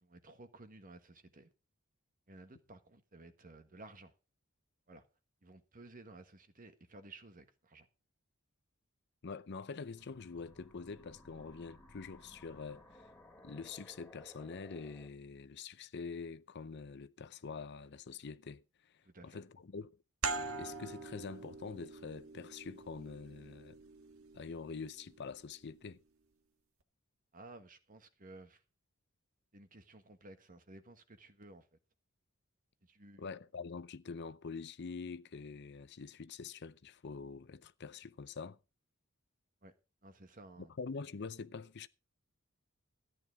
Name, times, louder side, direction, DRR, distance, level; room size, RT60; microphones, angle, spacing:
voice 1, 0.0-1.5 2.3-4.1 4.9-5.0 5.4-7.9 19.0-19.4 27.3-28.6 29.5-31.7 32.8-33.4 39.6-39.7 40.0-40.7, right 2 dB, 40° right, 1.5 m, -55 dB
voice 2, 9.2-13.1 13.4-18.9 19.2-19.9 20.6-23.8 24.3-26.0 33.2-38.6 40.6-41.9, left 5 dB, 55° left, 0.6 m, -45 dB
sound 1, 10.0-15.1, left 1 dB, 5° left, 2.7 m, -58 dB
sound 2, 20.2-25.5, right 4 dB, 80° right, 1.4 m, -44 dB
13.5 x 9.7 x 4.7 m
head